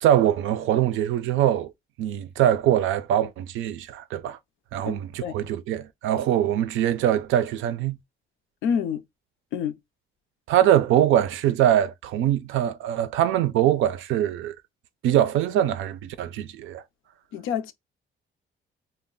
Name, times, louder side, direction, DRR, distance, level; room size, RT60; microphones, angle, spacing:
voice 1, 0.0-1.7 2.0-4.4 4.7-8.0 10.5-14.5 15.0-16.8, right 11 dB, 80° right, 0.4 m, -23 dB
voice 2, 8.6-9.0 9.5-9.8 17.3-17.7, left 7 dB, 85° left, 0.5 m, -27 dB
2.3 x 2.0 x 3.6 m
cardioid pair, 90°, 20 cm